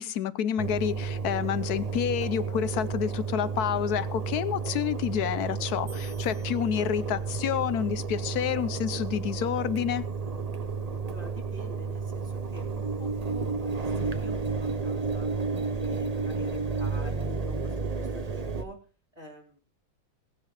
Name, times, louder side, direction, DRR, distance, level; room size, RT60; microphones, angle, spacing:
voice 1, 0.0-10.0, left 9 dB, 65° left, 15 dB, 1.1 m, -29 dB
Engine, 0.6-18.6, right 4 dB, 40° right, 0.5 m, -32 dB
sound 1, 5.9-7.5, right 2 dB, 65° right, 6.2 m, -54 dB
voice 2, 11.0-13.7 14.0-15.3 15.7-18.8 19.1-19.6, equal, 20° right, -1 dB, 2.9 m, -47 dB
18.0 x 10.5 x 3.3 m, 0.36 s
omnidirectional pair, 2.0 m